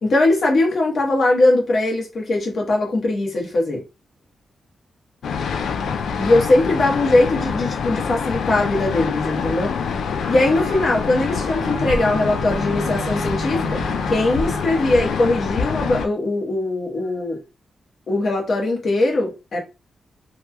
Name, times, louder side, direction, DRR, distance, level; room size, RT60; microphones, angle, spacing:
voice 1, 0.0-3.8 6.2-9.7 10.3-13.8 14.1-17.4 18.1-19.6, left 2 dB, 60° left, 1.0 m, -20 dB
sound 1, 5.2-16.1, left 6 dB, 85° left, 0.3 m, -25 dB
sound 2, 10.2-15.2, right 3 dB, 65° right, 0.6 m, -34 dB
3.0 x 2.2 x 2.3 m
cardioid pair, 105°, 0 cm